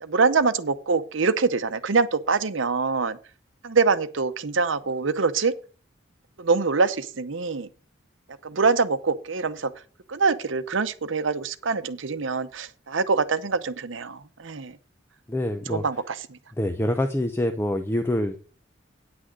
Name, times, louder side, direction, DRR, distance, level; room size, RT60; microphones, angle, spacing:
voice 1, 0.0-3.2 3.6-5.5 6.4-7.7 8.4-9.7 10.1-14.8 15.7-16.4, right 4 dB, 80° right, 0.8 m, -24 dB
voice 2, 15.3-15.8 16.6-18.4, left 1 dB, 10° left, 0.6 m, -25 dB
9.5 x 6.2 x 6.4 m
head